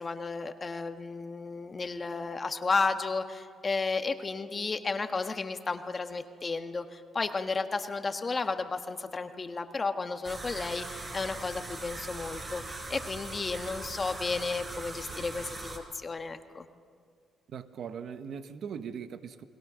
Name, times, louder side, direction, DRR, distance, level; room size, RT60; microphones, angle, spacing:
voice 1, 0.0-12.6 12.9-16.7, left 4 dB, 30° left, 7 dB, 1.4 m, -33 dB
sound 1, 10.2-15.8, right 2 dB, 35° right, 4.9 m, -41 dB
voice 2, 17.5-19.4, right 7 dB, 65° right, 10 dB, 1.1 m, -40 dB
30.0 x 21.5 x 6.3 m, 2.2 s
cardioid pair, 90°, 0 cm